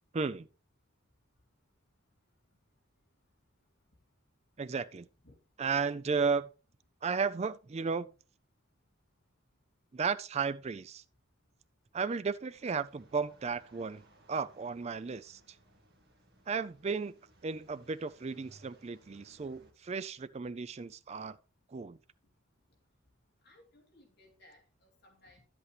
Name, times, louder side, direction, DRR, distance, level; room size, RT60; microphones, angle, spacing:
voice 1, 0.1-0.5 4.6-5.1 5.6-6.5 7.0-8.1 9.9-11.0 11.9-14.0 14.3-15.4 16.5-17.1 17.4-21.4 21.7-22.0, right 5 dB, 30° right, 0.4 m, -34 dB
sound 1, 12.5-19.7, right 1 dB, 50° right, 2.0 m, -63 dB
voice 2, 23.4-25.4, left 1 dB, 50° left, 3.3 m, -61 dB
11.0 x 8.0 x 3.3 m
head